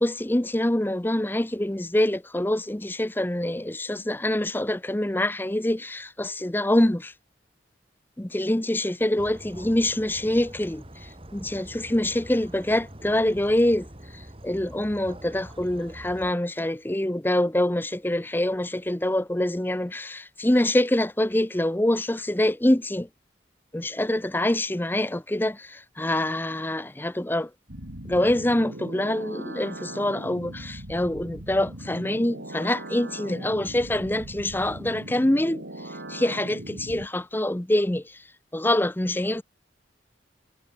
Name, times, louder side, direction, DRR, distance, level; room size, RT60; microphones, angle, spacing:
voice 1, 0.0-7.1 8.2-10.8 11.3-13.9 14.4-23.1 23.7-27.5 28.0-35.6 36.1-38.0 38.5-39.4, left 1 dB, 10° left, 0.7 m, -25 dB
sound 1, 9.2-16.3, right 1 dB, 30° right, 3.5 m, -45 dB
sound 2, 27.7-37.1, right 1 dB, 75° right, 5.9 m, -39 dB
head